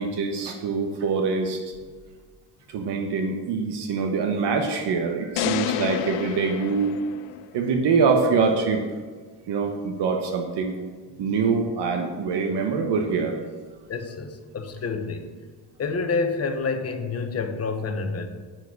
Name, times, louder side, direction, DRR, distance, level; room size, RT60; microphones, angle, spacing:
voice 1, 0.0-1.6 2.7-6.9 7.5-8.8 9.5-10.7 11.2-13.4, right 5 dB, 65° right, 4 dB, 1.3 m, -24 dB
sound 1, 5.4-7.7, left 13 dB, 75° left, 0.7 m, -30 dB
voice 2, 13.9-15.3 15.8-18.3, left 4 dB, 35° left, 6 dB, 1.1 m, -28 dB
9.2 x 6.8 x 6.5 m, 1.5 s
cardioid pair, 135°, 44 cm